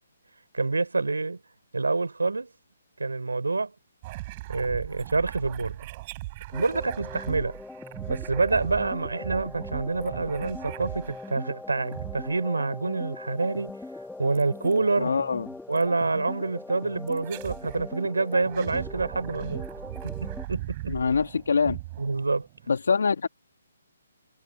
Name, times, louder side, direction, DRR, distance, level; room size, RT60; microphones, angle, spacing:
voice 1, 0.5-1.4 1.7-2.5 3.0-3.7 4.5-5.8 6.5-7.5 8.1-13.8 14.2-15.2 15.7-19.7 20.0-21.0 22.0-22.5, right 3 dB, 85° right, 4.5 m, -27 dB
sound 1, 4.0-11.5 11.9-12.7 14.4-14.8 15.8-15.9 17.1-17.9 18.3-22.7, right 19 dB, 35° right, 3.4 m, -39 dB
There Will Be Stars. Perfect for Suspense and Anticipation, 6.5-20.5, left 2 dB, 5° left, 2.3 m, -41 dB
voice 2, 15.0-15.5 20.9-21.8 22.7-23.3, left 5 dB, 70° left, 2.3 m, -24 dB
figure-of-eight pair, 145°, 0 cm